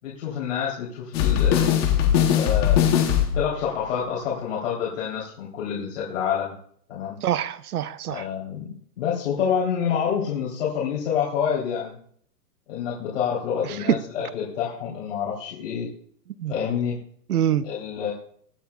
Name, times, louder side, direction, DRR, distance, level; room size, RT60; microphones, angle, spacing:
voice 1, 0.0-1.7 2.3-2.9 3.3-6.6 6.9-7.2 8.1-12.0 12.7-15.9 16.5-17.0 17.6-18.1, left 7 dB, 50° left, 3.5 m, -27 dB
sound 1, 1.1-3.5, left 9 dB, 15° left, 0.9 m, -20 dB
voice 2, 7.2-8.3 13.9-14.0 16.4-16.5 17.3-17.6, right 10 dB, 70° right, 0.9 m, -24 dB
22.5 x 8.6 x 2.4 m
hypercardioid pair, 165°, 47 cm